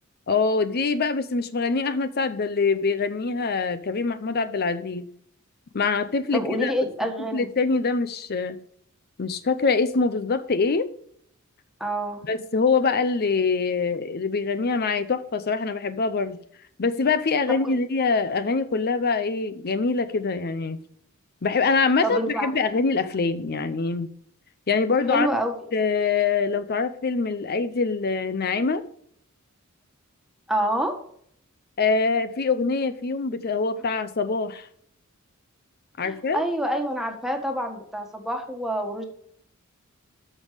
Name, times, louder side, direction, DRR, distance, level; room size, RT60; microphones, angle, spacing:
voice 1, 0.3-5.1 5.7-6.7 7.3-8.6 9.2-10.9 12.2-16.4 16.8-20.8 21.4-24.1 24.7-25.3 25.7-28.8 31.8-34.7 36.0-36.4, left 4 dB, 50° left, 0.6 m, -24 dB
voice 2, 6.3-7.5 11.8-12.2 17.6-17.7 22.0-22.5 25.1-25.6 30.5-30.9 36.0-39.0, right 1 dB, ahead, 1.6 m, -27 dB
13.5 x 5.4 x 5.0 m
head